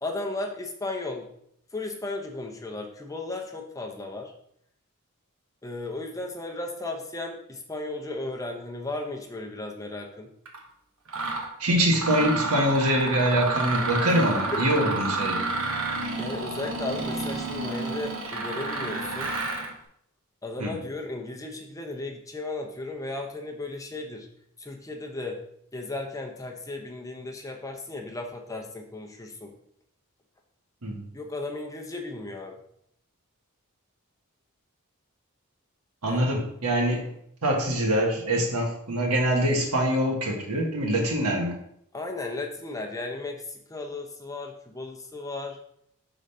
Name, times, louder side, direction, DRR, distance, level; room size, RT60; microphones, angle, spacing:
voice 1, 0.0-1.3 1.7-4.3 5.6-10.3 14.5-14.6 16.2-19.3 20.4-24.3 24.6-25.4 25.7-29.5 31.1-32.6 36.0-36.3 41.9-45.6, left 2 dB, 15° left, 2 dB, 0.7 m, -35 dB
Mechanisms, 10.5-10.6 11.1-11.5 11.9-19.7, right 3 dB, 65° right, 1.2 m, -30 dB
voice 2, 11.6-15.4 20.6-20.7 30.8-31.1 36.0-37.1 37.4-41.6, equal, 85° right, 0 dB, 1.5 m, -24 dB
5.0 x 3.9 x 5.5 m, 0.71 s
head